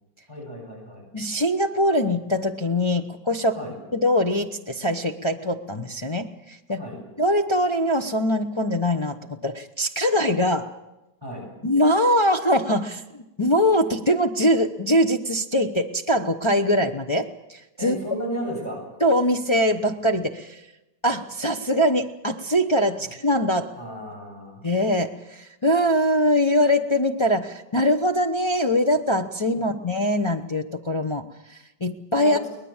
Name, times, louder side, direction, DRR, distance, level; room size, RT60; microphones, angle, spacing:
voice 1, 0.3-1.1 3.5-3.8 6.7-7.0 11.2-11.5 17.8-19.0 23.7-24.6 29.5-29.7 32.2-32.5, right 1 dB, 10° right, -2 dB, 7.2 m, -34 dB
voice 2, 1.1-3.5 3.9-6.8 7.2-10.7 11.6-13.0 13.4-18.0 19.0-20.6 21.0-23.7 24.6-31.2 31.8-32.4, equal, 40° left, 4 dB, 0.4 m, -22 dB
23.0 x 19.5 x 7.2 m, 0.97 s
omnidirectional pair, 2.0 m